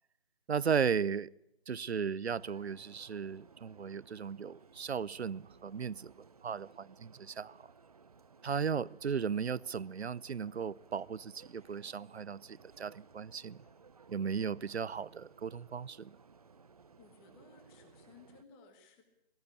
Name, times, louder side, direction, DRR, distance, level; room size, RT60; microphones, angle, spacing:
voice 1, 0.5-1.3 1.7-7.6 8.4-13.6 14.1-16.1, right 6 dB, 85° right, 0.8 m, -36 dB
sound 1, 2.3-18.4, right 5 dB, 35° right, 0.8 m, -60 dB
voice 2, 17.0-19.0, left 4 dB, 10° left, 1.3 m, -60 dB
18.0 x 17.5 x 8.3 m
hypercardioid pair, 170°, 31 cm